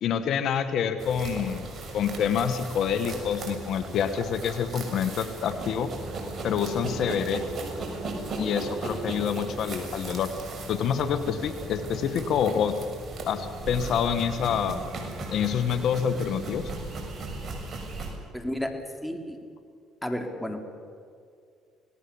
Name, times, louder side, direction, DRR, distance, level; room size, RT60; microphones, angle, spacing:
voice 1, 0.0-5.9 6.4-7.4 8.4-10.3 10.7-12.8 13.3-14.8 15.3-16.7, left 8 dB, 65° left, 10 dB, 1.4 m, -27 dB
sound 1, 1.0-18.1, right 2 dB, 45° right, 6.3 m, -36 dB
voice 2, 18.3-18.8 19.0-19.4 20.0-20.6, equal, 5° left, 4 dB, 3.6 m, -32 dB
26.0 x 18.5 x 7.1 m, 2.3 s
supercardioid pair, 80°, 0 cm